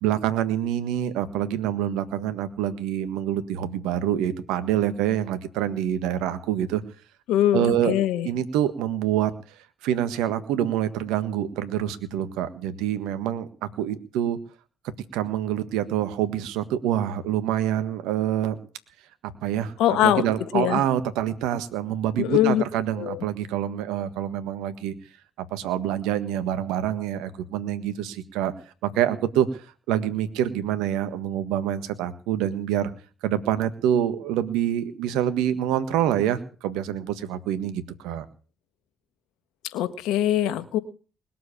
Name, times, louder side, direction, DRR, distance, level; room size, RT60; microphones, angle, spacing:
voice 1, 0.0-6.8 7.5-7.9 8.2-9.3 9.8-14.4 15.1-18.6 19.2-24.9 25.4-28.5 28.8-29.6 29.9-32.9 33.2-38.2, right 11 dB, 80° right, 11 dB, 1.6 m, -26 dB
voice 2, 7.3-8.3 19.8-20.2 20.5-20.8 22.2-22.6 23.0-23.2 39.7-40.8, left 11 dB, 75° left, 13 dB, 1.5 m, -22 dB
20.5 x 7.7 x 8.7 m, 0.39 s
hypercardioid pair, 50°, 0 cm